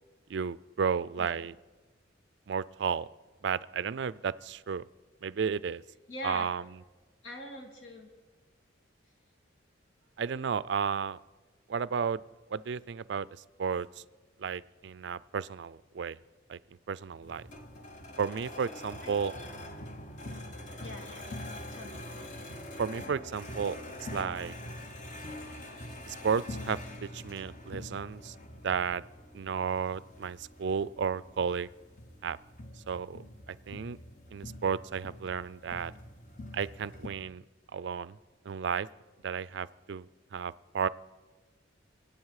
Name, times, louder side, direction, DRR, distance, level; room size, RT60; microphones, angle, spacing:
voice 1, 0.3-1.5 2.5-3.1 3.4-4.8 5.2-5.8 6.2-6.6 10.2-11.2 11.7-12.2 12.5-13.3 13.6-13.9 14.4-16.2 16.5-16.6 16.9-17.5 18.2-19.3 22.8-23.8 24.1-24.5 26.1-28.3 28.6-29.0 29.3-31.7 32.2-32.4 32.9-33.2 33.5-34.0 34.3-35.9 36.5-37.4 37.7-38.2 38.5-38.9 39.2-40.1 40.3-40.9, right 6 dB, 60° right, 19 dB, 0.4 m, -33 dB
voice 2, 6.1-6.5 7.2-8.1 19.0-19.5 20.8-21.4 21.7-22.1, left 1 dB, 75° left, 1 dB, 2.3 m, -43 dB
sound 1, 17.2-37.1, left 1 dB, 40° left, 1.2 m, -44 dB
24.0 x 8.7 x 4.8 m, 1.2 s
head